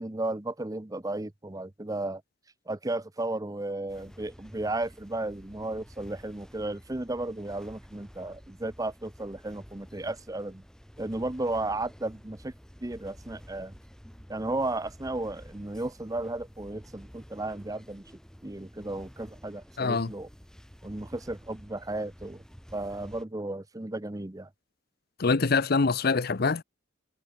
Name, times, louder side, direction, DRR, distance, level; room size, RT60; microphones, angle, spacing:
voice 1, 0.0-2.2 2.7-10.6 11.0-12.5 12.8-13.7 14.3-18.0 18.4-20.3 20.8-22.4 22.7-24.5, right 2 dB, 20° right, 0.7 m, -34 dB
sound 1, 3.9-23.2, equal, 5° left, 3.1 m, -51 dB
voice 2, 19.8-20.1 25.2-26.6, left 4 dB, 50° left, 0.7 m, -24 dB
head